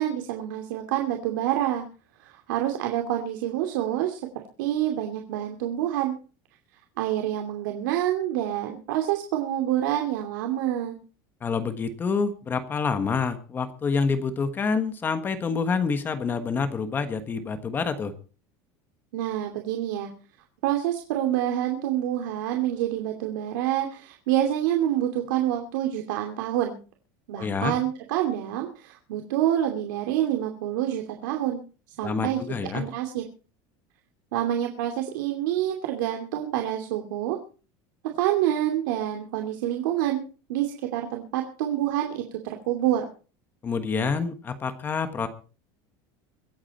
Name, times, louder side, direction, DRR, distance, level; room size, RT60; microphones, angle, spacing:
voice 1, 0.0-1.8 2.2-4.2 4.6-6.1 7.0-11.0 19.1-20.1 20.6-26.8 27.3-31.6 32.0-33.2 34.3-37.4 38.0-40.2 40.5-43.0, right 12 dB, 85° right, 3 dB, 2.7 m, -27 dB
voice 2, 11.4-18.1 27.4-27.7 32.0-32.8 43.6-45.3, left 5 dB, 20° left, 9 dB, 1.4 m, -27 dB
24.5 x 8.8 x 4.3 m, 0.36 s
cardioid pair, 165°, 10 cm